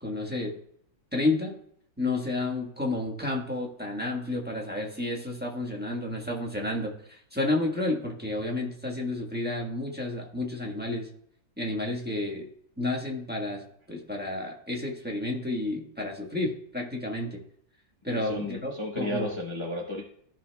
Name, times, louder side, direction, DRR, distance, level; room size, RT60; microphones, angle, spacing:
voice 1, 0.0-0.5 1.1-1.5 2.0-11.1 11.6-12.5 12.8-17.4 18.0-19.3, left 2 dB, 5° right, -2 dB, 1.1 m, -31 dB
voice 2, 18.2-20.0, left 1 dB, 25° left, -2 dB, 0.6 m, -33 dB
14.5 x 6.0 x 2.3 m, 0.68 s
omnidirectional pair, 2.1 m